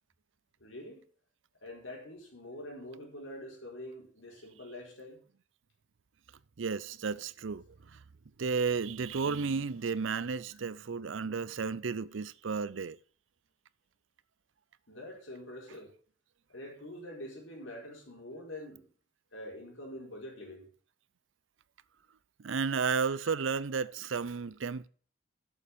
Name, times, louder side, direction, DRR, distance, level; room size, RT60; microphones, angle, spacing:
voice 1, 0.6-1.0 1.6-5.2 10.5-10.6 14.9-15.9 16.5-18.9 19.3-20.7 23.2-23.4, left 1 dB, 85° left, 4.6 m, -45 dB
voice 2, 6.6-7.6 8.4-13.0 22.4-24.9, right 5 dB, 80° right, 0.5 m, -32 dB
8.3 x 7.2 x 7.0 m
head